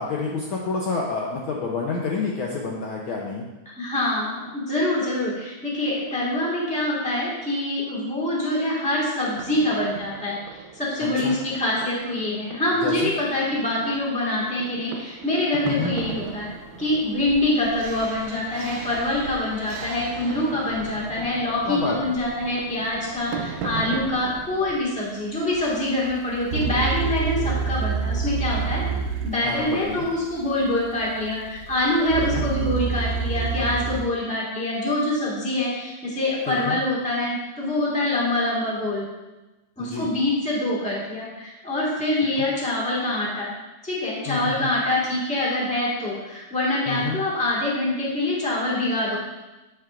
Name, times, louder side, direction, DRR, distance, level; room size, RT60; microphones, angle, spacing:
voice 1, 0.0-3.4 11.2-11.3 12.8-13.1 15.6-15.9 21.7-22.1 29.4-30.0 32.2-32.4 36.5-36.8 39.8-40.1 42.3-42.4 44.3-44.7 46.9-47.2, left 4 dB, 85° left, -2 dB, 1.1 m, -28 dB
voice 2, 3.8-10.4 10.7-16.5 16.8-28.8 29.2-39.0 39.8-43.5 43.8-49.2, left 1 dB, 5° left, -5 dB, 1.0 m, -25 dB
sound 1, 9.3-24.8, right 5 dB, 90° right, 2.0 m, -39 dB
sound 2, 17.8-34.0, right 6 dB, 70° right, 1.9 m, -31 dB
8.1 x 7.7 x 2.5 m, 1.1 s
omnidirectional pair, 3.3 m